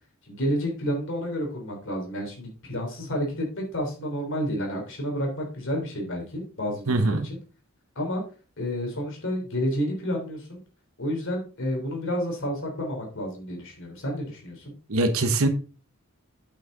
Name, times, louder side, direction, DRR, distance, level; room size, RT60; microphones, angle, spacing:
voice 1, 0.3-7.4 7.9-8.2 8.6-10.6 11.0-14.7, equal, 60° left, 1 dB, 3.3 m, -30 dB
voice 2, 6.9-7.3 14.9-15.5, right 2 dB, 70° right, 8 dB, 1.0 m, -22 dB
8.6 x 6.0 x 3.8 m, 0.36 s
head